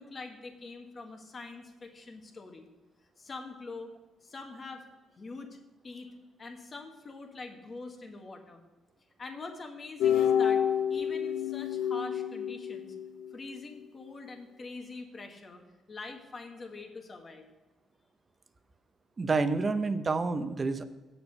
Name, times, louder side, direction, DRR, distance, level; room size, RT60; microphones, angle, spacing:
voice 1, 0.0-2.7 3.2-3.9 4.2-4.8 5.2-5.6 5.8-6.1 6.4-8.6 9.2-10.6 10.9-13.0 13.3-15.6 15.9-17.5, left 3 dB, 35° left, 3 dB, 1.7 m, -44 dB
sound 1, 10.0-13.3, left 8 dB, 85° left, 0.6 m, -28 dB
voice 2, 19.2-20.8, right 3 dB, 35° right, 9 dB, 0.8 m, -28 dB
8.7 x 7.1 x 5.4 m, 1.2 s
cardioid pair, 90°, 0 cm